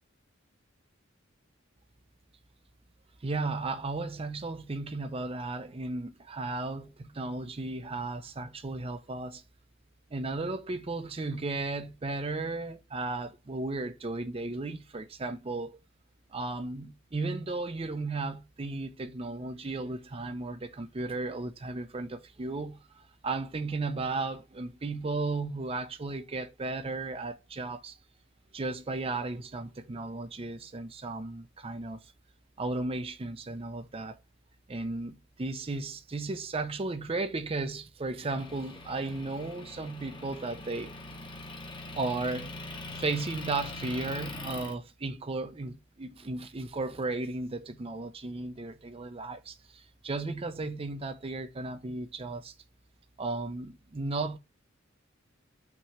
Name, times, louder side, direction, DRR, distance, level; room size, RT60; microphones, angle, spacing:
voice 1, 3.2-9.4 10.1-15.8 16.3-28.0 28.5-32.1 32.6-34.2 34.7-40.9 41.9-42.5 42.9-52.5 53.2-54.4, right 3 dB, 30° right, 0.5 m, -35 dB
Motor vehicle (road) / Engine, 38.4-44.7, left 2 dB, 25° left, 0.9 m, -42 dB
6.0 x 3.0 x 5.6 m
head